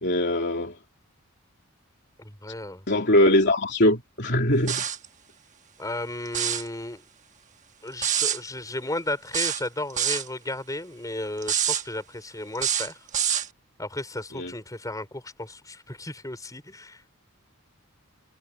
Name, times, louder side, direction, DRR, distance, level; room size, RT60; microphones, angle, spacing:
voice 1, 0.0-0.7 2.9-4.8 14.4-14.5, left 1 dB, 50° left, 3.1 m, -21 dB
voice 2, 2.2-2.8 5.8-7.0 7.8-13.1 13.8-17.1, left 1 dB, 15° left, 4.9 m, -34 dB
sound 1, 4.7-5.1 6.3-6.7 8.0-8.4 9.3-10.3 11.4-11.8 12.6-13.5, right 9 dB, 35° right, 1.3 m, -26 dB
head